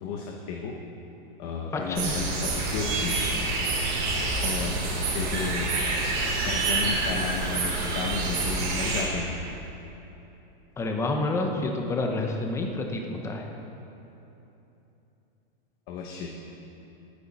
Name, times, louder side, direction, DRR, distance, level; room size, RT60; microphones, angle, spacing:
voice 1, 0.0-0.8 1.4-3.2 4.4-5.7 6.3-9.4 15.9-16.3, left 5 dB, 40° left, 1 dB, 1.1 m, -33 dB
voice 2, 1.7-2.2 10.8-13.5, left 2 dB, 10° left, 2 dB, 0.8 m, -28 dB
sound 1, 2.0-9.0, right 3 dB, 40° right, 3.2 m, -27 dB
20.0 x 9.5 x 4.3 m, 3.0 s
supercardioid pair, 155°, 29 cm